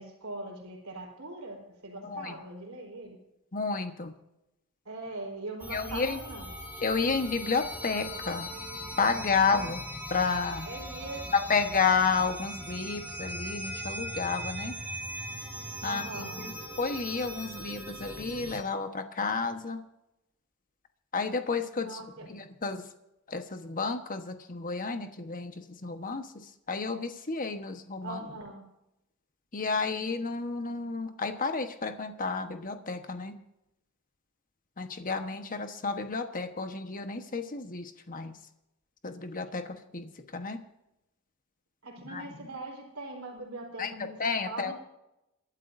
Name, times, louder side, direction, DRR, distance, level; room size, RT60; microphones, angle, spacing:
voice 1, 0.0-3.2 4.8-6.5 9.5-9.7 10.6-11.2 15.8-16.5 21.8-22.3 28.0-28.6 41.8-44.2 44.5-44.7, right 2 dB, 65° right, 1 dB, 4.1 m, -41 dB
voice 2, 2.0-2.3 3.5-4.1 5.7-6.2 6.8-8.5 9.0-9.8 10.1-10.7 11.3-14.7 15.8-19.8 21.1-22.8 23.3-26.3 26.7-28.2 29.5-33.3 34.8-38.3 39.0-40.6 42.0-42.4 43.8-43.9 44.2-44.7, left 4 dB, 40° left, 7 dB, 1.2 m, -31 dB
sound 1, 5.6-18.6, equal, 10° right, 1.5 m, -40 dB
27.5 x 12.0 x 2.7 m, 0.90 s
head